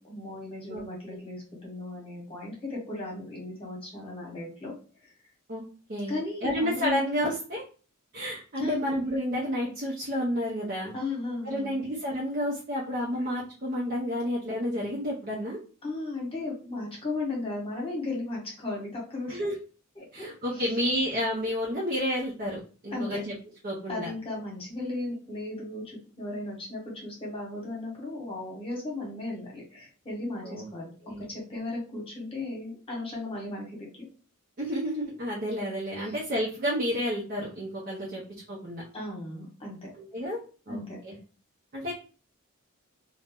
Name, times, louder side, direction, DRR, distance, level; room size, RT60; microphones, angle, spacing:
voice 1, 0.0-4.7 5.0-5.1 6.1-7.0 8.6-8.8 10.9-11.8 15.8-19.4 20.0-20.8 22.9-23.2 23.9-30.9 31.2-34.1 35.9-36.1 38.9-39.9 40.7-41.0, left 2 dB, 25° left, -3 dB, 1.0 m, -36 dB
voice 2, 6.4-7.6 8.1-10.9 11.4-15.6 19.3-19.6 20.1-23.3 23.6-24.1 30.4-30.7 31.0-31.2 34.6-38.2 38.5-38.8 40.0-40.4 40.7-41.1 41.7-41.9, equal, 45° right, -4 dB, 0.6 m, -30 dB
2.6 x 2.1 x 3.5 m, 0.38 s
head